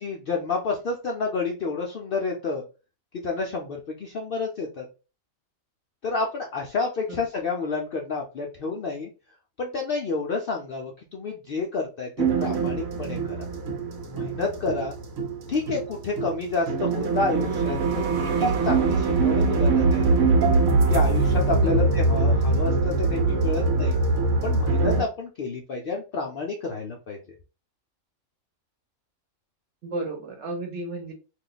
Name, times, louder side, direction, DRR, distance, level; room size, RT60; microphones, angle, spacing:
voice 1, 0.0-2.6 3.2-4.8 6.0-9.1 9.6-13.5 14.1-14.9 15.5-20.2 20.9-24.0 24.4-27.2, left 4 dB, 65° left, 0 dB, 0.5 m, -29 dB
sound 1, 12.2-25.0, right 3 dB, 80° right, 1.1 m, -23 dB
voice 2, 21.5-22.0 29.8-31.1, right 2 dB, 60° right, 3 dB, 1.1 m, -33 dB
2.5 x 2.2 x 3.8 m, 0.33 s
omnidirectional pair, 1.4 m